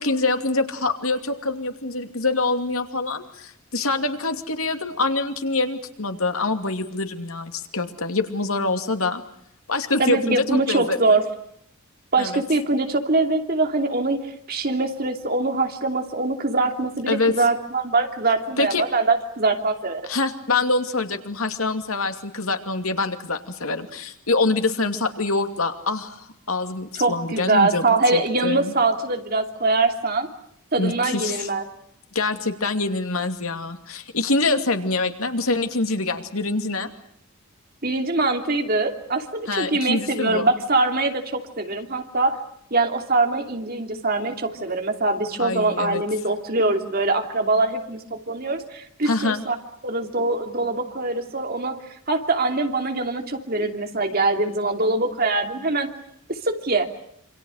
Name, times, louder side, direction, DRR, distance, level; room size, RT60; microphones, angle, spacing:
voice 1, 0.0-9.2 9.7-11.2 12.2-12.4 17.1-17.4 18.6-18.8 20.1-28.7 30.8-31.5 32.1-36.9 39.5-40.5 45.4-46.0 49.0-49.4, left 3 dB, 80° left, 6 dB, 2.6 m, -25 dB
voice 2, 10.0-11.2 12.1-20.0 26.9-30.3 30.7-31.6 37.8-42.4 42.7-49.5 49.8-51.8 52.1-55.9 56.3-56.9, right 3 dB, 45° right, 4 dB, 2.9 m, -23 dB
27.5 x 26.5 x 6.5 m, 0.72 s
head